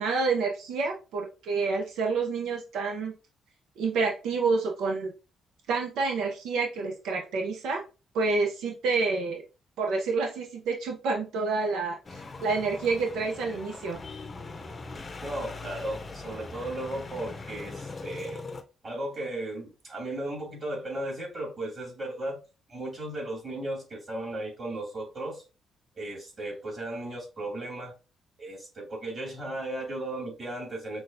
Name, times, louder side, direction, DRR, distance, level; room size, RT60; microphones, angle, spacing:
voice 1, 0.0-3.1 3.8-5.1 5.7-7.8 8.1-9.4 9.8-14.0, right 4 dB, 85° right, 2 dB, 0.6 m, -28 dB
sound 1, 12.0-18.6, left 3 dB, 30° left, 0.6 m, -41 dB
voice 2, 15.2-18.4 18.8-22.4 22.7-25.4 25.9-27.9 28.4-31.0, right 1 dB, 35° right, -1 dB, 2.4 m, -35 dB
5.9 x 2.3 x 2.6 m, 0.31 s
cardioid pair, 90°, 0 cm